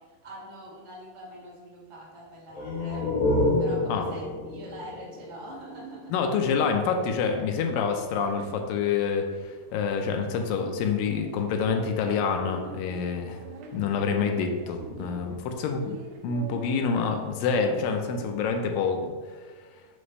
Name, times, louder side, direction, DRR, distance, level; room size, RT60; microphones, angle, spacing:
voice 1, 0.0-3.1 3.6-6.1, right 1 dB, 45° right, -5 dB, 0.4 m, -44 dB
sound 1, 2.5-6.1, left 2 dB, 65° left, 2.0 m, -28 dB
voice 2, 6.1-13.4 13.7-16.0 16.2-19.1, left 5 dB, 90° left, 4 dB, 2.4 m, -27 dB
sound 2, 6.4-19.1, right 4 dB, 75° right, 1.9 m, -46 dB
5.8 x 5.3 x 3.3 m, 1.4 s
omnidirectional pair, 3.9 m